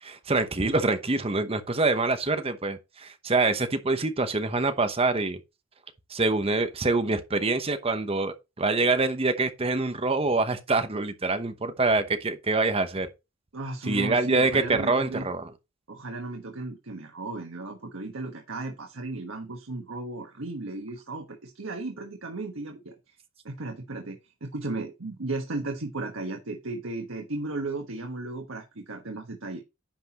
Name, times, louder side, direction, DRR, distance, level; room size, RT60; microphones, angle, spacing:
voice 1, 0.0-5.4 6.1-13.1 13.9-15.4, right 3 dB, 30° right, 0.9 m, -25 dB
voice 2, 13.5-15.2 15.9-23.1 23.4-29.6, right 2 dB, 90° right, 1.3 m, -35 dB
10.0 x 6.0 x 3.0 m
head